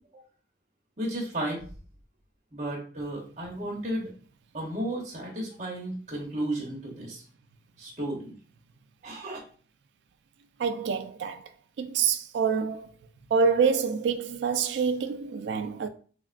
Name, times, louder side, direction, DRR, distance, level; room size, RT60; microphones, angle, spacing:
voice 1, 1.0-1.6 2.5-4.1 4.5-7.2 7.8-8.3 9.0-9.4, right 1 dB, 40° right, 0.9 m, -33 dB
voice 2, 10.6-11.4 11.8-12.9 13.3-15.9, right 6 dB, 80° right, 0.3 m, -26 dB
3.4 x 2.2 x 2.4 m
head